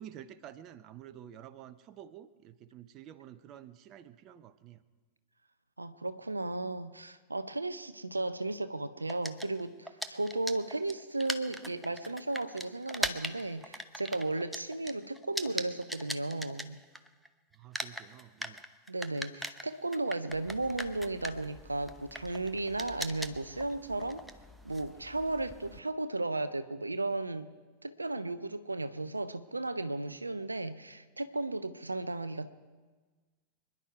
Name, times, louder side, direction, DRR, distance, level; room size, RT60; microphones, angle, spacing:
voice 1, 0.0-4.8 17.5-18.6, right 10 dB, 35° right, 13 dB, 0.7 m, -50 dB
voice 2, 5.8-16.8 18.9-24.2 24.6-27.5 27.8-32.5, right 2 dB, 80° right, 12 dB, 0.5 m, -35 dB
sound 1, 9.1-17.3 17.5-25.8, equal, ahead, 0.8 m, -40 dB
26.0 x 11.0 x 4.7 m, 1.4 s
figure-of-eight pair, 90°, 0 cm